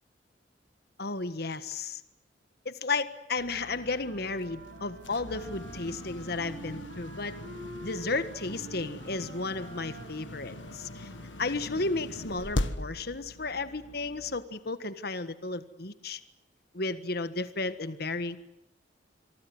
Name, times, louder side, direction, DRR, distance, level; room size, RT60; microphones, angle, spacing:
voice 1, 1.0-2.0 2.6-7.4 7.8-11.1 11.4-16.2 16.7-18.4, left 3 dB, 55° left, 12 dB, 1.5 m, -33 dB
sound 1, 3.4-14.4, left 1 dB, 90° left, 1.5 m, -40 dB
Wind instrument woodwind instrument, 3.6-12.2, right 2 dB, 60° right, 6.6 m, -48 dB
26.5 x 23.5 x 7.9 m, 0.87 s
head